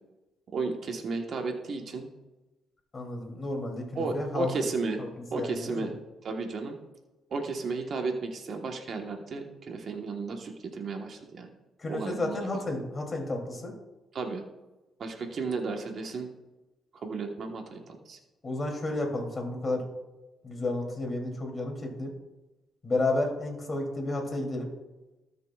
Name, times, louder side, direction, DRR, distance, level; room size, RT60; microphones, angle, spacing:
voice 1, 0.5-2.1 3.9-5.0 5.3-6.0 6.2-6.8 7.3-11.5 11.9-12.5 14.1-14.4 15.0-16.3 16.9-18.2, right 4 dB, 55° right, 4 dB, 1.2 m, -33 dB
voice 2, 2.9-4.5 5.0-5.1 5.3-5.9 11.8-13.7 18.4-19.9 20.4-22.1 22.8-24.7, left 2 dB, 30° left, 1 dB, 2.9 m, -31 dB
19.0 x 6.7 x 2.4 m, 1.1 s
cardioid pair, 90°, 0 cm